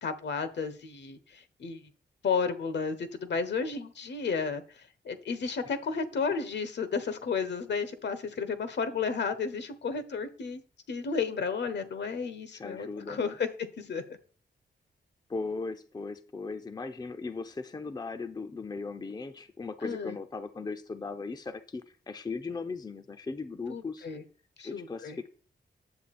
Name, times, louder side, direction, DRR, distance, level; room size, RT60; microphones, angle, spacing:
voice 1, 0.0-1.9 2.2-10.6 10.9-14.0 19.8-20.2 23.7-24.2 24.6-25.2, left 5 dB, 70° left, 11 dB, 1.2 m, -33 dB
voice 2, 12.5-13.4 15.3-24.1 24.6-25.3, left 4 dB, 20° left, 9 dB, 0.6 m, -38 dB
9.5 x 7.7 x 4.2 m, 0.42 s
wide cardioid pair, 145°, 19 cm